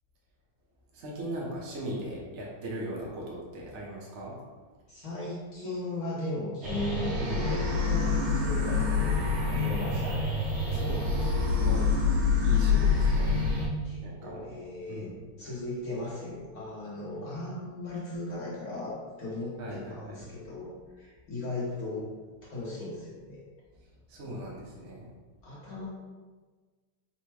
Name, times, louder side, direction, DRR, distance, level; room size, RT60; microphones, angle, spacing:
voice 1, 0.9-4.4 7.1-7.4 10.6-11.9 12.4-13.3 14.0-14.6 14.9-15.2 19.6-20.3 24.1-25.1, right 1 dB, 55° right, -4 dB, 0.8 m, -39 dB
voice 2, 4.9-10.2 13.8-15.1 15.4-20.7 21.0-22.0 22.5-23.4 24.2-24.4 25.4-25.9, left 2 dB, 55° left, -7 dB, 1.2 m, -37 dB
sound 1, 6.6-13.7, left 4 dB, 90° right, 1.7 m, -26 dB
4.2 x 2.1 x 4.6 m, 1.4 s
omnidirectional pair, 2.2 m